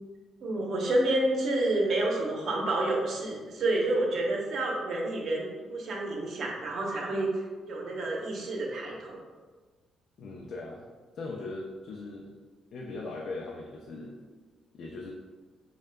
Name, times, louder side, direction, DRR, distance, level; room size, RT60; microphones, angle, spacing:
voice 1, 0.4-7.3 7.7-9.2, right 2 dB, 65° right, -1 dB, 0.9 m, -29 dB
voice 2, 10.2-10.9 11.1-12.3 12.7-14.1 14.7-15.1, left 3 dB, 65° left, -1 dB, 0.5 m, -39 dB
6.3 x 2.3 x 2.2 m, 1.4 s
cardioid pair, 90°, 0 cm